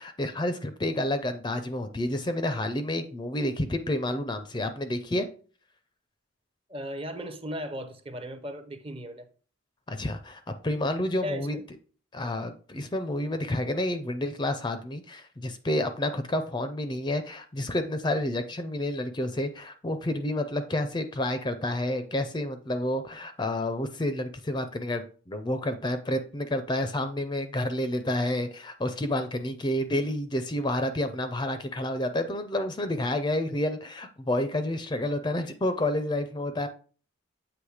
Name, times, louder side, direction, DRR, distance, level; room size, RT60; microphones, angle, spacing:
voice 1, 0.0-5.3 9.9-11.6 12.1-36.7, left 1 dB, 20° left, 0.4 m, -29 dB
voice 2, 6.7-9.3 11.2-11.6, equal, 25° right, 0.6 m, -36 dB
7.9 x 3.0 x 4.8 m
head